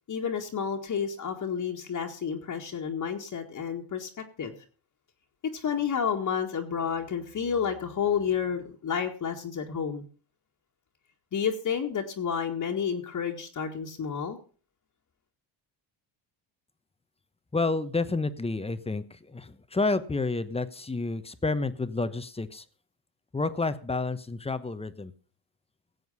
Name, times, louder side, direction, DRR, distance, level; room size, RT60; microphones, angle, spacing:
voice 1, 0.1-4.1 4.4-4.5 5.4-10.1 11.3-14.4, left 7 dB, 45° left, 1 dB, 2.0 m, -30 dB
voice 2, 17.5-19.0 19.3-22.6 23.3-25.1, left 3 dB, 15° left, 13 dB, 1.0 m, -29 dB
16.5 x 7.9 x 5.5 m, 0.40 s
cardioid pair, 90°, 45 cm